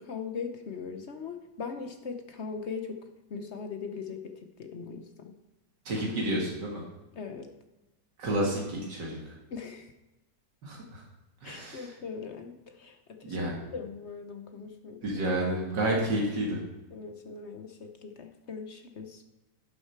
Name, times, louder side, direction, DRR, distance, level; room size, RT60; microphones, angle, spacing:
voice 1, 0.0-5.4 7.1-7.5 9.5-9.9 11.4-15.0 16.9-19.2, left 5 dB, 55° left, 6 dB, 0.8 m, -40 dB
voice 2, 5.9-6.8 8.2-9.3 10.6-11.0 11.4-11.9 13.2-13.6 15.0-16.6, right 1 dB, 75° right, -2 dB, 2.4 m, -30 dB
11.5 x 6.7 x 4.5 m, 1.0 s
omnidirectional pair, 1.9 m